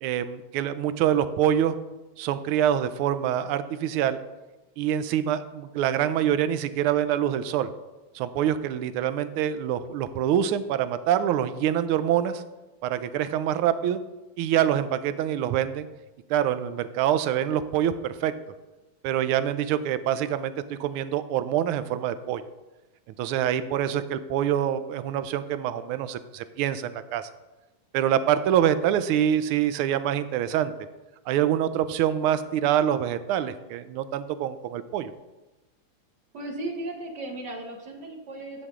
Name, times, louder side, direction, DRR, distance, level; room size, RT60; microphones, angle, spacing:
voice 1, 0.0-1.8 2.2-4.2 4.8-7.7 8.1-12.4 12.8-14.0 14.4-15.9 16.3-18.3 19.0-22.4 23.2-27.3 27.9-30.7 31.3-35.1, right 10 dB, 80° right, 12 dB, 1.5 m, -25 dB
voice 2, 36.3-38.7, right 2 dB, 55° right, 1 dB, 1.8 m, -36 dB
10.0 x 7.9 x 3.6 m, 1.1 s
omnidirectional pair, 2.4 m